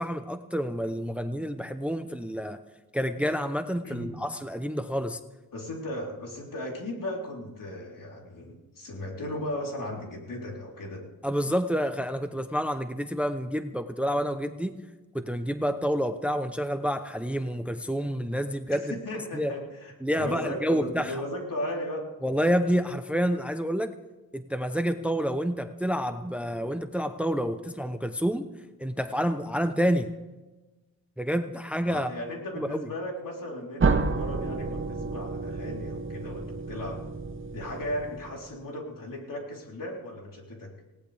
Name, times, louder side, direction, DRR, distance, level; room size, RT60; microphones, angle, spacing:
voice 1, 0.0-2.6 2.9-5.2 11.2-14.7 15.1-18.9 19.3-19.5 20.0-21.2 22.2-23.9 24.3-28.5 28.8-30.1 31.2-32.1 32.6-32.9, equal, 5° right, 9 dB, 0.7 m, -28 dB
voice 2, 3.8-4.2 5.5-11.0 18.7-22.1 31.8-37.0 37.5-40.7, left 1 dB, 65° left, -1 dB, 3.8 m, -36 dB
sound 1, 33.8-38.6, right 4 dB, 35° right, 1.0 m, -30 dB
19.5 x 17.5 x 3.5 m, 1.1 s
wide cardioid pair, 95°, 36 cm